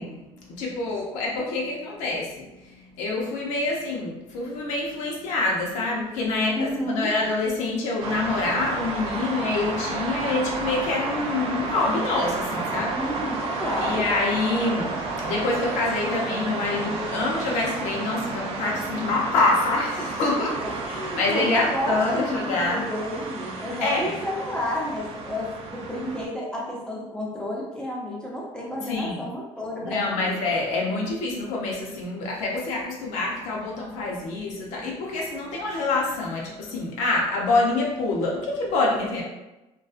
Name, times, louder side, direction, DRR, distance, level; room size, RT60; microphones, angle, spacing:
voice 1, 0.0-13.0 13.8-20.5 20.9-22.8 23.8-24.2 28.8-29.2 29.8-39.2, left 3 dB, 85° left, -2 dB, 0.6 m, -26 dB
voice 2, 6.6-7.1 12.9-14.0 20.4-30.3, left 1 dB, 5° left, -4 dB, 0.6 m, -31 dB
sound 1, 8.0-26.3, right 3 dB, 55° right, 0.4 m, -31 dB
2.5 x 2.3 x 2.4 m, 0.99 s
cardioid pair, 155°, 12 cm